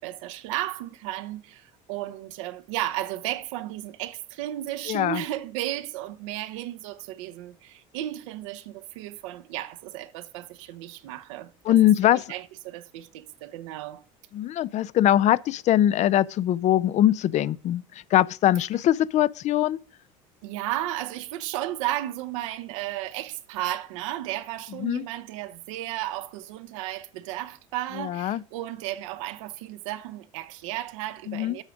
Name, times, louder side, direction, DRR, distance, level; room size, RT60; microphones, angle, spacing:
voice 1, 0.0-11.7 12.0-14.0 20.4-31.6, right 14 dB, 85° right, 0.8 m, -34 dB
voice 2, 4.9-5.2 11.6-12.3 14.3-19.8 24.8-25.1 28.0-28.4 31.3-31.6, left 12 dB, 50° left, 0.5 m, -22 dB
8.0 x 5.0 x 7.1 m
supercardioid pair, 95°, 16 cm